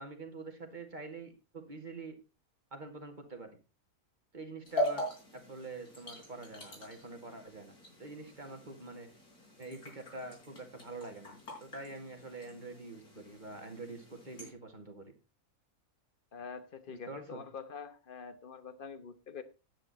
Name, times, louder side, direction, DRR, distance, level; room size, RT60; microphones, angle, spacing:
voice 1, 0.0-2.2 2.7-3.6 4.3-7.7 8.0-9.1 9.6-15.1 16.9-17.4, right 3 dB, 30° right, 4 dB, 2.2 m, -46 dB
sound 1, 4.7-14.5, left 1 dB, 90° left, 5.2 m, -42 dB
voice 2, 16.3-19.4, left 6 dB, 40° left, 12 dB, 1.1 m, -45 dB
10.0 x 8.7 x 4.2 m, 0.30 s
omnidirectional pair, 1.6 m